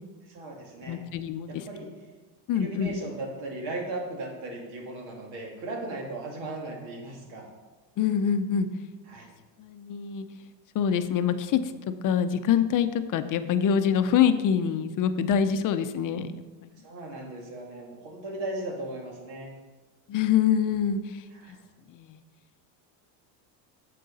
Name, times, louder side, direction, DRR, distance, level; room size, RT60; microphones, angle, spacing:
voice 1, 0.3-1.0 1.5-1.9 2.5-7.5 9.1-9.3 16.8-19.5 21.3-21.6, right 2 dB, 65° right, 0 dB, 2.7 m, -37 dB
voice 2, 0.9-1.6 2.5-2.9 8.0-8.7 9.6-10.3 10.7-16.4 20.1-21.0 21.9-22.2, left 8 dB, 40° left, 10 dB, 0.6 m, -25 dB
9.4 x 7.6 x 4.1 m, 1.2 s
cardioid pair, 125°, 49 cm